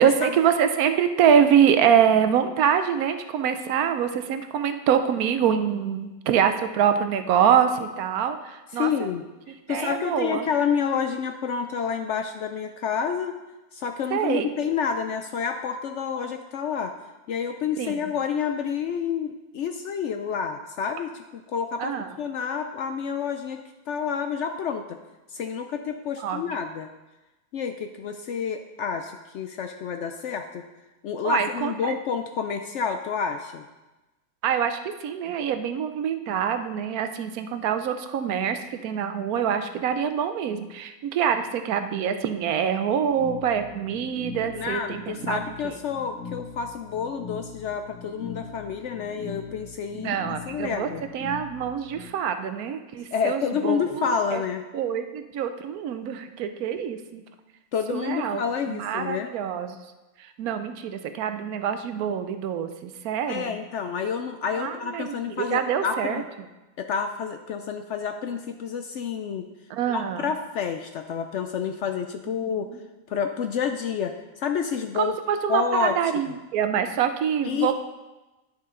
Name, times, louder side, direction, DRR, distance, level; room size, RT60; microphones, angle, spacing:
voice 1, 0.0-9.1 9.7-10.5 14.1-14.5 17.8-18.0 21.8-22.2 26.2-26.5 31.2-32.0 34.4-45.8 49.9-54.4 54.7-57.2 57.9-59.8 60.2-63.6 64.6-66.2 69.7-70.3 72.5-72.8 74.9-77.7, right 8 dB, 75° right, 8 dB, 1.1 m, -25 dB
voice 2, 8.8-13.4 13.7-16.9 17.3-21.9 22.2-23.6 23.9-24.9 25.3-26.9 27.5-30.6 31.0-33.6 44.5-50.2 50.5-51.0 53.1-54.6 57.7-59.3 63.3-66.2 66.8-69.5 69.8-72.7 73.1-75.2 75.5-75.9 77.4-77.7, left 6 dB, 70° left, 7 dB, 0.7 m, -29 dB
sound 1, 43.1-52.1, left 6 dB, 45° left, 2.7 m, -41 dB
10.5 x 6.6 x 3.7 m, 1.1 s
omnidirectional pair, 1.6 m